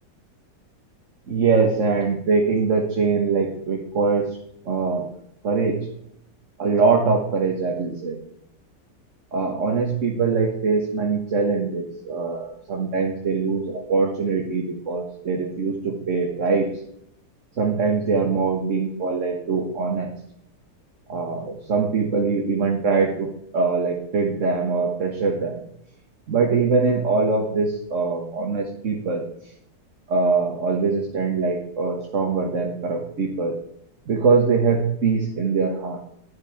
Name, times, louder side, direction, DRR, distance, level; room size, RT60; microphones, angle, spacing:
voice 1, 1.3-4.4 4.6-5.1 5.4-5.9 6.6-8.2 9.3-16.8 17.6-20.1 21.1-25.6 26.3-29.3 30.1-33.6 34.1-36.0, right 4 dB, 45° right, 2 dB, 1.6 m, -23 dB
12.0 x 10.5 x 3.5 m, 0.78 s
omnidirectional pair, 1.9 m